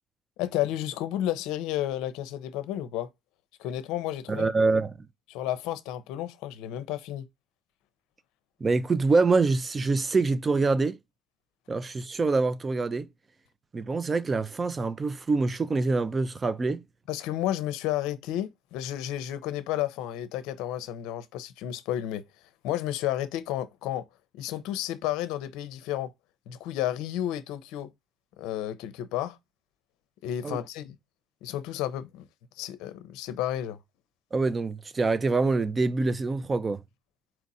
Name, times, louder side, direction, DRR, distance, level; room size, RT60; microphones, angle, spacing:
voice 1, 0.4-3.1 3.6-4.5 5.3-7.3 17.1-22.2 22.6-24.1 24.3-26.1 26.5-27.9 28.4-29.4 30.2-31.0 31.4-32.2 32.6-33.8, left 12 dB, 85° left, 0.5 m, -32 dB
voice 2, 4.3-5.1 8.6-11.0 11.7-13.1 13.7-16.8 30.4-30.6 34.3-36.8, right 3 dB, 30° right, 0.5 m, -25 dB
4.3 x 2.5 x 4.0 m
supercardioid pair, 85°, 0 cm